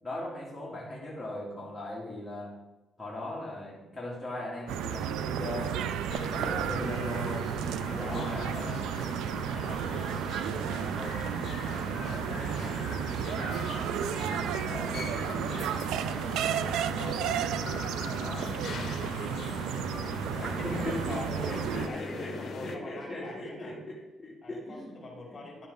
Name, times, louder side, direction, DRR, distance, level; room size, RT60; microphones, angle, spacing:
voice 1, 0.0-2.6 3.0-6.1 6.3-7.5 7.9-8.8 14.6-14.9 18.2-18.5 20.4-21.1 21.5-24.9 25.3-25.4, left 1 dB, 10° left, -6 dB, 2.5 m, -38 dB
sound 1, 4.7-21.9, right 9 dB, 90° right, 0.4 m, -32 dB
sound 2, 6.1-22.7, left 5 dB, 60° left, 0.8 m, -40 dB
voice 2, 7.8-8.9 9.5-12.9 13.2-17.4 18.0-19.4 20.2-23.7 24.4-25.7, left 2 dB, 35° left, -1 dB, 2.9 m, -44 dB
11.0 x 6.9 x 3.7 m, 1.0 s
cardioid pair, 90°, 0 cm